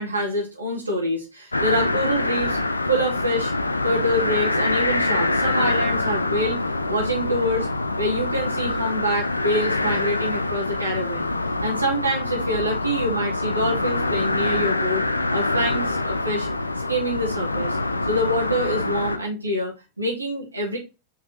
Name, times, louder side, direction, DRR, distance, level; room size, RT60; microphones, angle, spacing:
voice 1, 0.0-2.6 2.9-3.5 3.8-6.6 6.9-7.7 8.0-11.3 11.6-15.0 15.3-16.5 16.9-17.8 18.1-20.8, equal, 80° right, -3 dB, 1.2 m, -26 dB
sound 1, 1.5-19.2, left 2 dB, 80° left, 0.3 m, -25 dB
4.9 x 3.1 x 2.8 m, 0.27 s
figure-of-eight pair, 90°, 0 cm